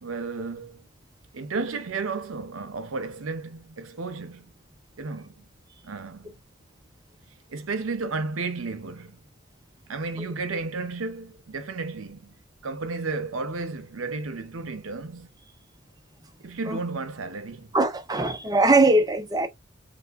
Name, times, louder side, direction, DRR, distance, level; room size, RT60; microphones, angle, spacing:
voice 1, 0.0-0.9 1.3-4.5 5.0-5.5 5.8-6.3 7.5-9.2 9.9-15.3 16.4-17.8, right 3 dB, 85° right, 0.7 m, -33 dB
voice 2, 17.7-19.5, right 2 dB, 20° right, 0.5 m, -21 dB
3.3 x 2.1 x 3.4 m
head